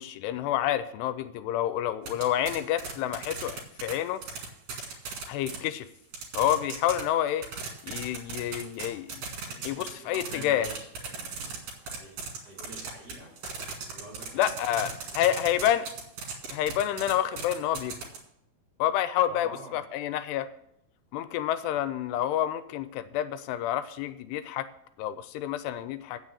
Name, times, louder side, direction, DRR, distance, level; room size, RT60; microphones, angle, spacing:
voice 1, 0.0-4.2 5.3-5.9 6.3-7.5 7.8-9.2 9.6-10.7 14.3-15.9 16.5-18.0 18.8-20.5 21.1-24.7 25.0-26.2, left 11 dB, 85° left, 13 dB, 2.7 m, -28 dB
sound 1, 2.1-3.9 4.2-5.6 6.1-7.0 7.3-9.9 10.1-18.2, right 6 dB, 60° right, 3.5 m, -36 dB
voice 2, 9.4-13.3 13.9-14.4 14.8-15.2 19.3-19.8, right 1 dB, 25° right, -4 dB, 4.3 m, -47 dB
8.8 x 6.2 x 8.3 m, 0.77 s
omnidirectional pair, 4.7 m